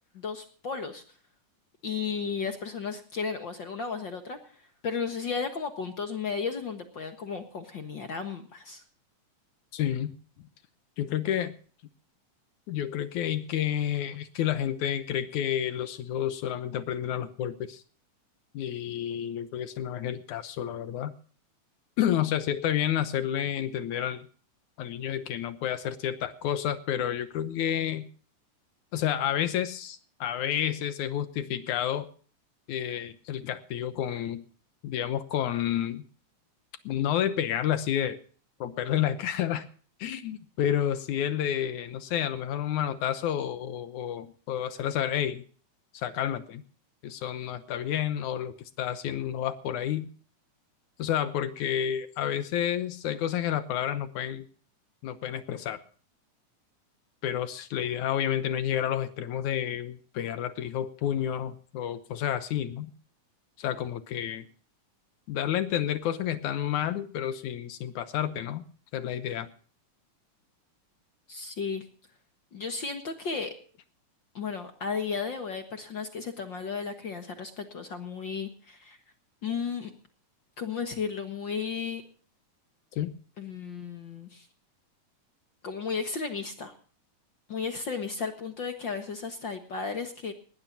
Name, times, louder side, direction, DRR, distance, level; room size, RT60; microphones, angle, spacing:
voice 1, 0.1-1.0 1.8-8.8 71.3-71.8 72.5-73.5 74.3-79.0 79.4-79.9 80.6-82.0 83.4-84.5 85.6-86.7 87.5-90.3, left 5 dB, 50° left, 6 dB, 1.6 m, -34 dB
voice 2, 9.7-10.1 11.0-11.5 12.7-17.8 18.5-21.1 22.0-24.3 24.8-28.1 28.9-32.1 32.7-34.4 34.8-36.0 36.9-38.2 38.6-39.6 40.0-45.4 45.9-46.6 47.0-50.1 51.0-54.4 55.0-55.8 57.2-62.9 63.6-64.5 65.3-68.6 68.9-69.5 83.0-83.2, left 10 dB, 75° left, 11 dB, 2.3 m, -30 dB
19.5 x 19.0 x 2.8 m, 0.43 s
omnidirectional pair, 3.6 m